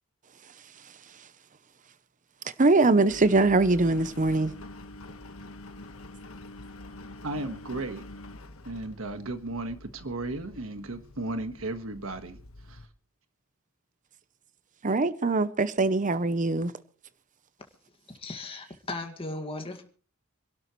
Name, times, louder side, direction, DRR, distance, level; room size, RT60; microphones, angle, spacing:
voice 1, 2.6-4.5 14.8-16.7, right 3 dB, 35° right, 0.7 m, -22 dB
Engine, 3.1-12.9, left 2 dB, 70° left, 1.4 m, -46 dB
voice 2, 7.2-8.0 8.6-12.4 12.7-12.9, right 2 dB, 70° right, 1.5 m, -35 dB
voice 3, 18.1-19.8, left 2 dB, 25° left, 1.9 m, -37 dB
26.5 x 12.0 x 3.1 m
head